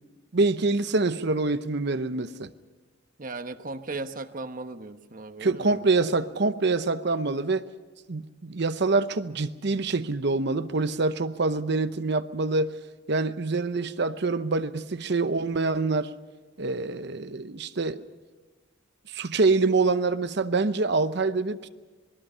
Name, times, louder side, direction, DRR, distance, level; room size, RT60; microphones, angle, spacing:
voice 1, 0.3-2.5 5.4-7.6 8.1-12.8 13.1-16.1 16.6-18.0 19.1-21.7, right 3 dB, 60° right, 0.8 m, -25 dB
voice 2, 3.2-5.9, right 3 dB, 45° right, 1.1 m, -37 dB
26.5 x 21.0 x 5.6 m
head